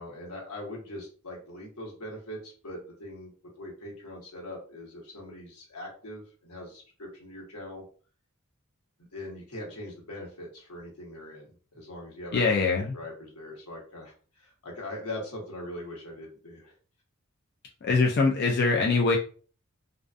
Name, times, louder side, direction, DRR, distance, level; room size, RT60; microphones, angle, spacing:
voice 1, 0.0-7.8 9.0-12.5 12.9-16.7, left 1 dB, 85° left, -1 dB, 1.1 m, -41 dB
voice 2, 12.3-13.0 17.8-19.2, left 4 dB, 45° left, 0 dB, 0.3 m, -23 dB
2.4 x 2.4 x 2.3 m, 0.40 s
head